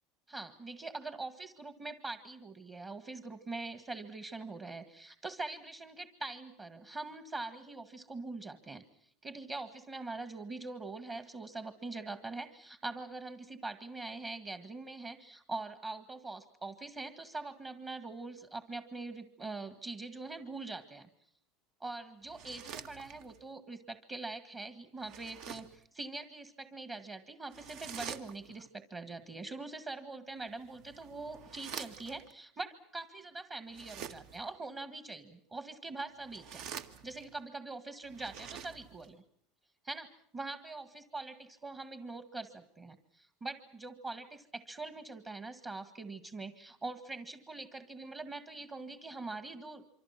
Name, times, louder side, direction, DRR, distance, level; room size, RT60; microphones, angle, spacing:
voice 1, 0.3-8.8 9.2-21.1 21.8-36.6 37.0-39.2 39.8-49.8, right 3 dB, 20° right, 9 dB, 1.7 m, -43 dB
sound 1, 22.2-23.5 25.0-25.8 27.5-28.7 30.5-32.3 33.7-34.5 36.1-37.4 38.0-39.1, right 8 dB, 55° right, 1.7 m, -47 dB
26.5 x 25.0 x 5.8 m, 0.63 s
supercardioid pair, 155°, 0 cm